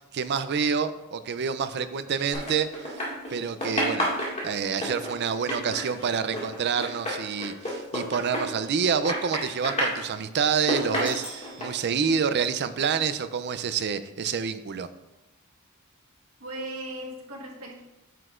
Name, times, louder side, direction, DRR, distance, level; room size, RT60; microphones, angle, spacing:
voice 1, 0.1-3.0 3.3-4.1 4.4-14.9, right 6 dB, 50° right, 12 dB, 0.4 m, -27 dB
sound 1, 2.3-3.3 3.6-8.8 9.0-10.0 10.5-11.6, equal, 30° left, 2.0 m, -29 dB
Doorbell, 10.9-12.9, right 1 dB, 10° right, 3.0 m, -45 dB
voice 2, 16.4-17.8, right 1 dB, 80° right, -1 dB, 1.5 m, -37 dB
9.2 x 8.0 x 2.5 m, 0.99 s
head